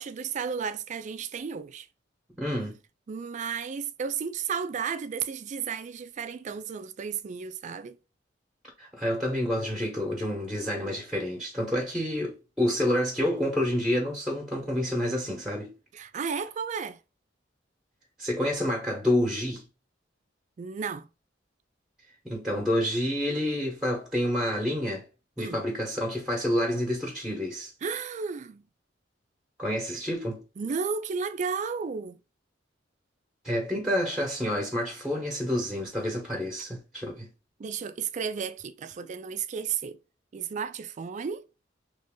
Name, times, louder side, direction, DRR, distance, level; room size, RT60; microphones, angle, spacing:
voice 1, 0.0-1.9 3.1-8.0 15.9-17.0 20.6-21.1 25.4-25.6 27.8-28.7 30.6-32.2 37.6-40.0 40.3-41.5, right 6 dB, 40° right, 0.3 m, -33 dB
voice 2, 2.4-2.8 8.8-15.7 18.2-19.6 22.2-25.0 25.4-27.7 29.6-30.4 33.4-37.3, left 1 dB, 5° right, 0.9 m, -28 dB
3.0 x 2.6 x 3.6 m
head